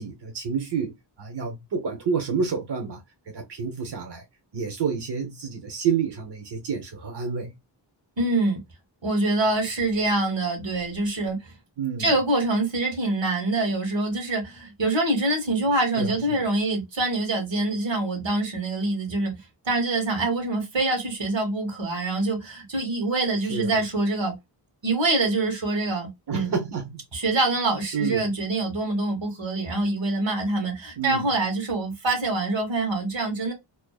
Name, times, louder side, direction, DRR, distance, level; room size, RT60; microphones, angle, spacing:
voice 1, 0.0-4.2 4.5-7.5 11.8-12.2 16.0-16.5 23.5-23.8 26.3-27.0 27.9-28.3 31.0-31.3, right 6 dB, 65° right, 0.7 m, -29 dB
voice 2, 8.2-8.6 9.0-11.4 12.0-19.4 19.6-24.3 24.8-26.5 27.1-33.5, right 2 dB, 85° right, 1.1 m, -25 dB
2.5 x 2.3 x 2.3 m
wide cardioid pair, 55°, 44 cm